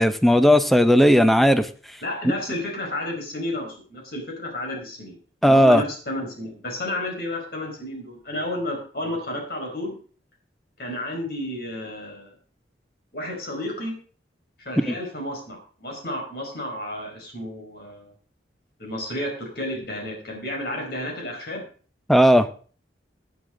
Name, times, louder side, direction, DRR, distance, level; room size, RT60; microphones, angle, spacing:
voice 1, 0.0-1.7 5.4-5.8 14.9-15.0 22.1-22.5, equal, ahead, 10 dB, 0.7 m, -16 dB
voice 2, 2.0-5.2 5.4-9.9 10.8-12.3 13.1-13.9 14.6-18.1 18.8-21.6, left 1 dB, 60° left, 1 dB, 5.0 m, -31 dB
16.0 x 9.2 x 3.8 m, 0.41 s
head